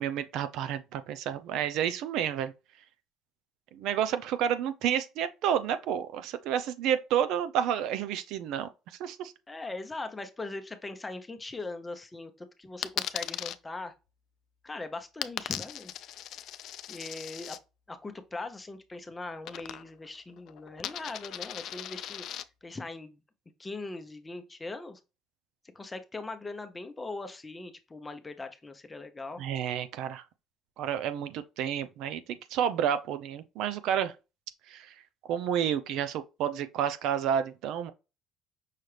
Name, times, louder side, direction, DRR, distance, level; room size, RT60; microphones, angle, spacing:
voice 1, 0.0-2.5 3.7-8.7 9.0-9.3 29.4-30.2 30.8-34.1 34.7-34.9 35.3-37.9, right 9 dB, 75° right, 0.5 m, -30 dB
voice 2, 9.5-13.9 14.6-15.9 16.9-17.6 17.9-22.2 22.6-23.2 23.6-25.0 25.7-29.4, left 3 dB, 15° left, 0.7 m, -40 dB
Coin (dropping), 12.8-13.6 15.2-17.6 19.4-20.1 20.4-22.4, left 12 dB, 60° left, 0.3 m, -38 dB
5.7 x 2.4 x 3.3 m
cardioid pair, 120°, 0 cm